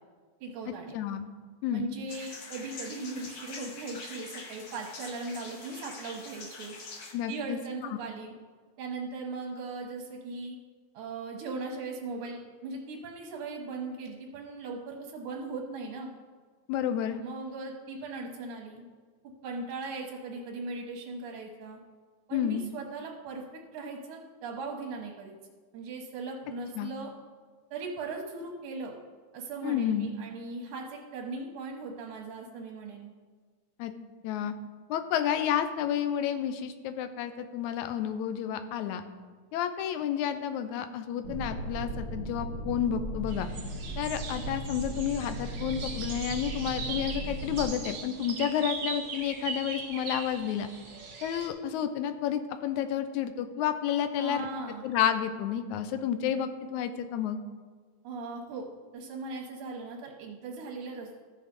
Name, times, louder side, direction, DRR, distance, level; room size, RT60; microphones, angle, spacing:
voice 1, 0.4-1.0 1.7-6.7 7.3-8.3 8.8-10.6 10.9-16.1 17.2-18.9 19.2-21.8 22.3-25.4 25.7-27.1 27.7-28.9 29.3-33.1 54.2-54.9 58.0-58.7 58.9-61.1, right 3 dB, 80° right, -1 dB, 2.5 m, -39 dB
voice 2, 0.9-1.3 1.6-1.9 7.1-7.6 16.7-17.2 22.3-22.6 26.8-26.9 29.6-30.1 33.8-33.9 34.2-34.5 34.9-39.0 39.5-43.5 44.0-50.7 51.2-54.5 54.8-57.4, left 9 dB, 85° left, 9 dB, 2.0 m, -30 dB
sound 1, 2.1-7.1, left 3 dB, 60° left, 0.9 m, -44 dB
sound 2, 41.2-47.6, right 1 dB, 45° left, 2.5 m, -37 dB
sound 3, 43.3-51.5, right 5 dB, 50° right, 1.5 m, -40 dB
13.5 x 6.6 x 5.2 m, 1.5 s
omnidirectional pair, 3.4 m